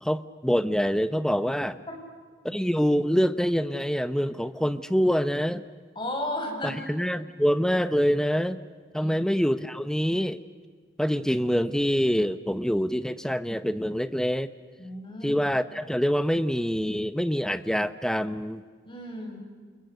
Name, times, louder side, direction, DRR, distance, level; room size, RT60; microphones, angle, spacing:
voice 1, 0.0-1.8 2.4-5.6 6.6-8.6 8.9-10.4 11.0-14.5 15.2-18.6, equal, 5° left, 13 dB, 0.8 m, -25 dB
voice 2, 6.0-6.8 9.0-9.3 14.8-15.4 18.9-19.4, left 1 dB, 25° left, 1 dB, 6.3 m, -34 dB
30.0 x 28.5 x 6.7 m, 1.6 s
head